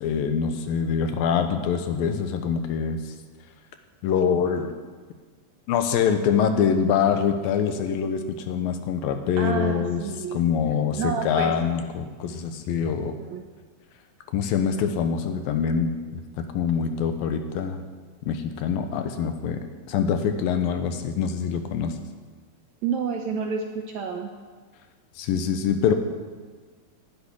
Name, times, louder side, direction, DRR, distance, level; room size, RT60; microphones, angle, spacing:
voice 1, 0.0-3.1 4.0-4.7 5.7-10.0 10.3-13.2 14.3-17.8 18.2-21.9 25.2-25.9, left 7 dB, 75° left, 7 dB, 2.8 m, -24 dB
voice 2, 9.4-10.4 11.0-11.6 12.9-13.5 22.8-24.3, right 6 dB, 75° right, 3 dB, 1.8 m, -30 dB
11.5 x 10.5 x 10.0 m, 1.5 s
omnidirectional pair, 4.2 m